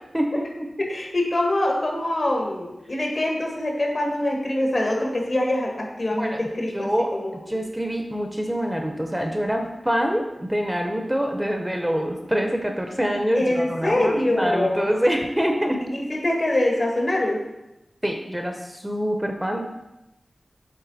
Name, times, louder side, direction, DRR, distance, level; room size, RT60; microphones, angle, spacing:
voice 1, 0.1-0.7 6.2-6.5 6.7-15.8 18.0-19.6, equal, 10° right, 4 dB, 0.7 m, -25 dB
voice 2, 0.8-7.6 13.3-14.9 15.9-17.4, left 1 dB, 55° left, 0 dB, 1.5 m, -24 dB
8.4 x 3.6 x 4.1 m, 0.95 s
wide cardioid pair, 65°, 0 cm